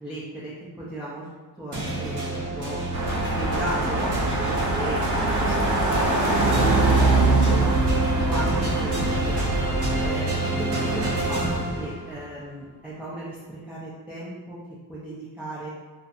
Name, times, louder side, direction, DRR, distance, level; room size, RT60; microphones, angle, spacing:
voice 1, 0.0-1.3 1.6-2.8 3.2-6.0 6.4-7.0 7.4-7.8 8.2-9.4 10.0-14.6 14.9-15.7, right 1 dB, 5° right, -9 dB, 0.5 m, -36 dB
sound 1, 1.7-12.3, right 1 dB, 80° right, 0.9 m, -27 dB
sound 2, 2.9-10.1, right 2 dB, 45° right, 0.6 m, -23 dB
2.5 x 2.1 x 2.5 m, 1.3 s
cardioid pair, 65°, 40 cm